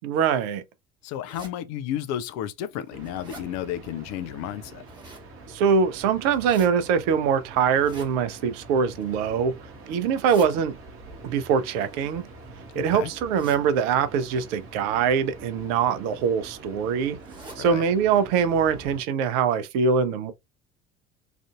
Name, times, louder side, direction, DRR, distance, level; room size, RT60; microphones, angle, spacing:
voice 1, 0.0-0.6 5.5-9.5 9.9-10.8 11.2-12.3 12.7-17.2 17.6-20.3, right 6 dB, 60° right, 0.6 m, -23 dB
voice 2, 1.0-4.8 12.7-13.1 17.6-17.8, left 11 dB, 50° left, 0.5 m, -32 dB
sound 1, 1.2-1.5 2.2-2.3 2.7-3.5 4.6-5.3 6.2-6.7 7.7-8.1 8.9-9.3 10.0-10.5 11.6-12.6 13.3-13.6 14.3-14.6 15.6-15.8 16.2-16.3 16.5-16.6 17.2-17.6 18.0-18.2 18.4-18.5 19.1-19.2 19.5-19.6, right 2 dB, 10° right, 1.2 m, -46 dB
sound 2, 2.9-19.0, right 2 dB, 35° right, 1.0 m, -45 dB
3.3 x 2.5 x 2.4 m
figure-of-eight pair, 60°, 36 cm